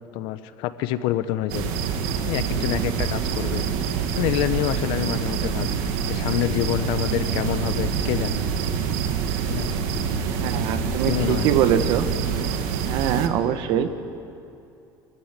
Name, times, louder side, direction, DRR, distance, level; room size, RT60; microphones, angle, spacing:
voice 1, 0.1-1.7 2.3-5.8 6.1-8.4 9.5-9.7 11.1-11.6, left 12 dB, 60° left, 12 dB, 0.9 m, -27 dB
sound 1, 1.5-13.3, right 6 dB, 75° right, 1.7 m, -26 dB
voice 2, 10.3-12.1 12.9-14.0, right 9 dB, 55° right, 9 dB, 1.3 m, -23 dB
25.5 x 15.0 x 9.9 m, 2.6 s
cardioid pair, 175°, 9 cm